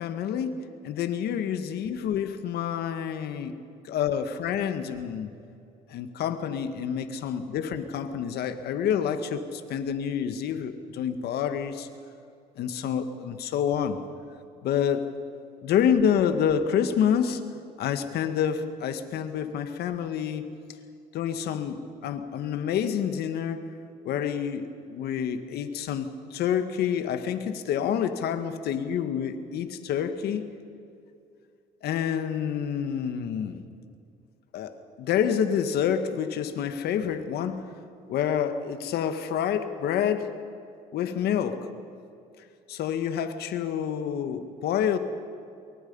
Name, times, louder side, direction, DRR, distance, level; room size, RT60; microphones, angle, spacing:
voice 1, 0.0-3.6 3.8-5.3 5.9-11.9 12.6-14.0 14.6-15.1 15.6-17.4 17.8-20.5 21.1-23.7 24.0-30.5 31.8-33.6 34.5-37.6 38.1-40.3 40.9-41.7 42.7-45.0, left 8 dB, 70° left, 9 dB, 1.7 m, -28 dB
24.0 x 23.0 x 5.5 m, 2.5 s
cardioid pair, 110°, 17 cm